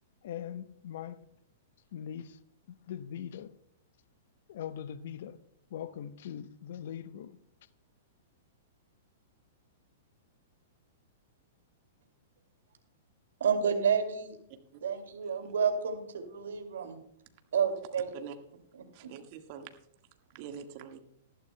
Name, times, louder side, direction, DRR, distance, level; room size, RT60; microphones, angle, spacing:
voice 1, 0.2-1.2 1.9-2.4 2.7-3.5 4.5-5.4 5.7-7.4, left 9 dB, 60° left, 0.8 m, -41 dB
voice 2, 13.4-14.4 14.8-17.0 17.5-18.1 18.7-19.1, right 6 dB, 70° right, 2.3 m, -30 dB
voice 3, 18.9-19.7 20.3-21.0, right 8 dB, 45° right, 1.6 m, -44 dB
19.0 x 13.5 x 2.2 m
figure-of-eight pair, 105°, 0 cm